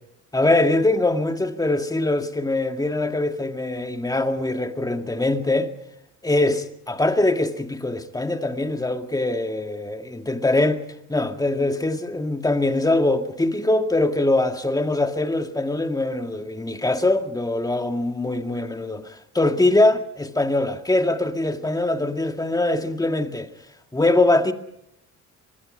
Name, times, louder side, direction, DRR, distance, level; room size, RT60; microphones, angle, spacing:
voice 1, 0.3-5.7 6.2-10.8 11.1-23.5 23.9-24.5, left 2 dB, 10° left, 2.1 m, -22 dB
24.5 x 21.5 x 5.5 m
cardioid pair, 90°, 30 cm